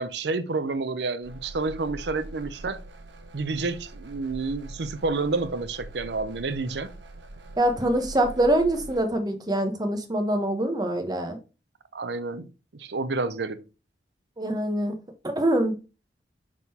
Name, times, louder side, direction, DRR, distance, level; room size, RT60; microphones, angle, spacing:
voice 1, 0.0-2.8 3.3-6.9 11.9-13.6, right 3 dB, 70° right, 0.6 m, -29 dB
sound 1, 1.2-9.1, right 2 dB, 90° right, 1.0 m, -43 dB
voice 2, 7.6-11.4 14.4-15.0 15.2-15.7, right 1 dB, 25° right, 1.0 m, -24 dB
6.0 x 3.8 x 4.3 m
head